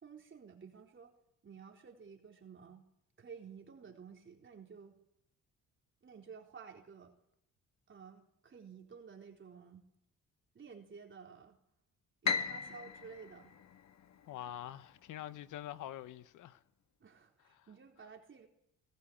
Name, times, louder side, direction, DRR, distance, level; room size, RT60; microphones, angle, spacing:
voice 1, 0.0-1.1 1.4-2.9 3.2-5.0 6.0-7.1 7.9-9.9 10.5-11.6 12.2-13.5 17.0-18.5, right 6 dB, 40° right, 4.0 m, -53 dB
Piano, 12.2-14.5, left 5 dB, 65° left, 1.8 m, -37 dB
voice 2, 14.3-16.6 17.6-17.7, left 12 dB, 85° left, 1.2 m, -45 dB
20.5 x 18.5 x 8.8 m
cardioid pair, 90°, 30 cm